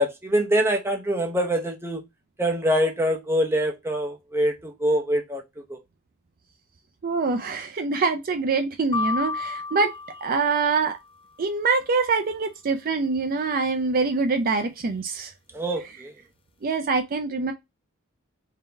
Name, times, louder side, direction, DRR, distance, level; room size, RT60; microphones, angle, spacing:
voice 1, 0.0-2.0 2.4-5.4 5.7-5.8 15.5-16.1, equal, 10° right, 0.7 m, -24 dB
voice 2, 7.0-9.9 10.2-11.0 11.4-15.3 16.6-17.5, right 4 dB, 45° right, 0.5 m, -24 dB
sound 1, 8.9-11.1, left 4 dB, 25° left, 0.4 m, -31 dB
3.7 x 2.8 x 3.3 m
head